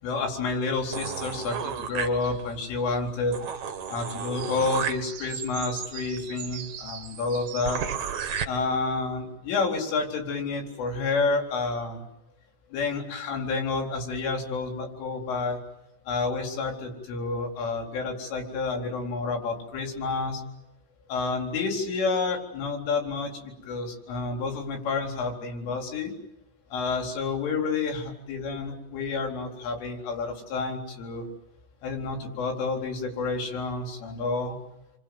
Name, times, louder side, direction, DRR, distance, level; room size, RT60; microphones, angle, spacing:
voice 1, 0.0-3.4 3.9-7.8 8.5-12.0 12.7-15.6 16.1-20.4 21.1-26.1 26.7-31.3 31.8-34.6, left 3 dB, 85° left, 2 dB, 6.6 m, -29 dB
sound 1, 0.9-2.6 3.0-3.1 3.3-8.4, right 7 dB, 50° right, 2.4 m, -34 dB
30.0 x 25.0 x 7.9 m, 0.87 s
omnidirectional pair, 5.5 m